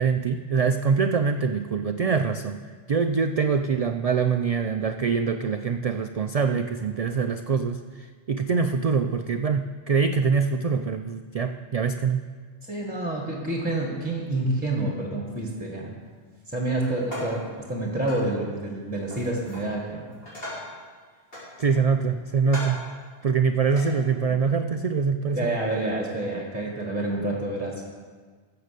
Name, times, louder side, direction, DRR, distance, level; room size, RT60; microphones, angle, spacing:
voice 1, 0.0-2.6 2.9-12.2 21.6-22.8 23.2-25.5, right 5 dB, 55° right, 8 dB, 0.4 m, -24 dB
voice 2, 12.7-15.9 16.5-20.1 25.3-27.8, right 2 dB, 10° right, -1 dB, 1.6 m, -28 dB
sound 1, 16.8-17.5 18.1-18.3 19.1-19.7 20.1-20.8 21.3-22.0 22.4-22.9 23.7-23.9, left 1 dB, 55° left, 5.1 m, -38 dB
15.0 x 6.8 x 6.7 m, 1.5 s
omnidirectional pair, 1.1 m